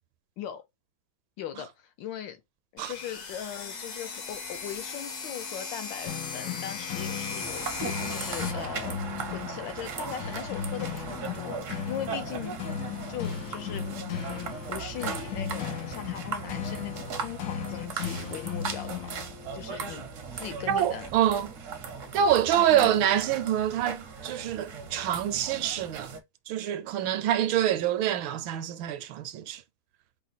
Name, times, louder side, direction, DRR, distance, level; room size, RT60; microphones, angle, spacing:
voice 1, 1.4-2.4 2.7-12.6 13.1-19.1 19.5-20.1 20.3-21.1 22.5-22.9, left 10 dB, 75° left, 1.2 m, -39 dB
sound 1, 2.8-8.5, left 5 dB, 55° left, 1.1 m, -37 dB
sound 2, 6.0-19.6, left 8 dB, 90° left, 0.8 m, -37 dB
sound 3, 7.4-26.2, right 5 dB, 65° right, 0.8 m, -38 dB
voice 2, 20.7-21.5 22.1-26.1 26.5-29.6, right 10 dB, 80° right, 1.3 m, -26 dB
4.9 x 2.1 x 4.0 m
omnidirectional pair, 2.3 m